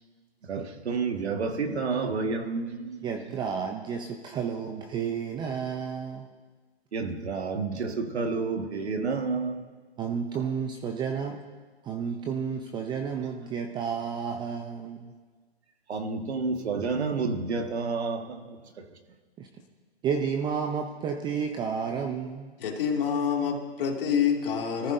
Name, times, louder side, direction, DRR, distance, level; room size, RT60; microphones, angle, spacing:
voice 1, 0.5-3.1 6.9-9.6 10.3-10.5 15.9-18.8, right 4 dB, 80° right, 4 dB, 1.8 m, -30 dB
voice 2, 3.0-6.3 10.0-11.4 11.8-15.1 19.4-19.5 20.0-22.6, right 6 dB, 15° right, 4 dB, 0.5 m, -31 dB
voice 3, 22.6-24.9, left 7 dB, 55° left, 1 dB, 2.5 m, -27 dB
23.5 x 14.0 x 2.7 m, 1.4 s
hypercardioid pair, 130°, 32 cm